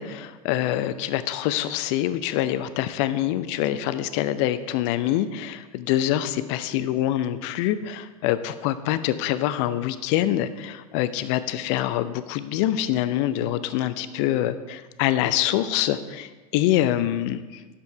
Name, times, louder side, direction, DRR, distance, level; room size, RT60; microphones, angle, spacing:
voice 1, 0.0-17.6, left 12 dB, 50° left, 13 dB, 0.6 m, -25 dB
10.5 x 6.9 x 3.5 m, 1.3 s
figure-of-eight pair, 85°, 20 cm